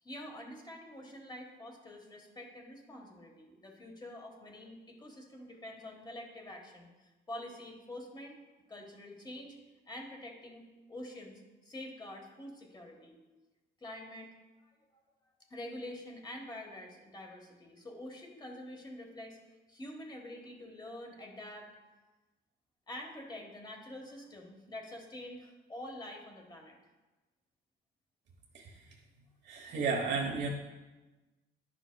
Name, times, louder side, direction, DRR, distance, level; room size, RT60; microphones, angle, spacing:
voice 1, 0.0-8.4 8.7-9.6 9.9-13.2 13.8-14.3 14.6-14.7 15.5-19.4 19.7-21.7 22.9-26.8, left 1 dB, 20° left, 1 dB, 1.4 m, -46 dB
voice 2, 29.4-30.5, right 4 dB, 60° right, -1 dB, 1.0 m, -33 dB
10.5 x 5.0 x 2.2 m, 1.2 s
cardioid pair, 90°, 20 cm